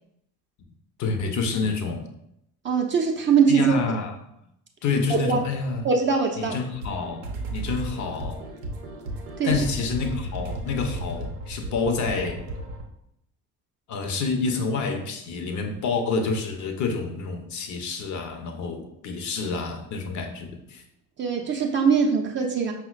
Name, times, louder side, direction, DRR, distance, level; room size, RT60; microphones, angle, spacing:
voice 1, 1.0-2.1 3.5-4.1 4.8-5.9 6.4-8.5 9.4-12.4 13.9-20.8, left 4 dB, 40° left, 5 dB, 0.6 m, -28 dB
voice 2, 2.6-3.8 5.1-5.4 5.8-6.6 9.4-9.6 21.2-22.7, right 5 dB, 25° right, 1 dB, 0.5 m, -22 dB
sound 1, 6.7-12.8, right 1 dB, 85° right, 0.6 m, -34 dB
5.4 x 2.1 x 2.4 m, 0.78 s
figure-of-eight pair, 55°, 45 cm